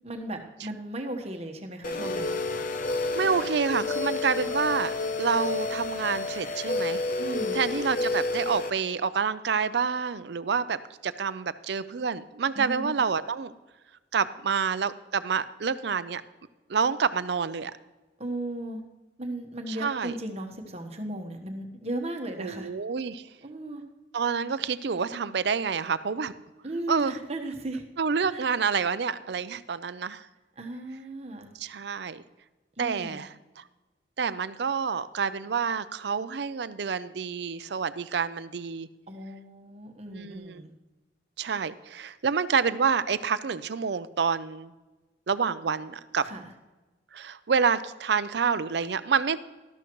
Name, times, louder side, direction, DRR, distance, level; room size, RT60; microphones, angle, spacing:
voice 1, 0.0-2.4 7.2-7.6 12.5-13.0 18.2-18.8 19.2-22.7 23.4-23.8 26.6-27.8 28.3-28.5 30.6-31.5 32.8-33.2 39.1-40.7 46.2-46.5, right 1 dB, 35° right, 4 dB, 1.2 m, -36 dB
sound 1, 1.8-8.7, left 3 dB, 45° left, 0.7 m, -30 dB
voice 2, 3.2-7.0 7.5-13.5 14.1-16.2 16.7-17.7 19.7-20.1 22.4-23.3 24.1-26.3 26.9-27.2 28.0-30.3 31.6-32.2 32.8-33.6 34.2-38.9 40.1-40.6 41.4-44.7 45.3-46.3 47.1-49.4, right 6 dB, 65° right, 15 dB, 0.5 m, -28 dB
12.5 x 12.0 x 3.1 m, 1.2 s
head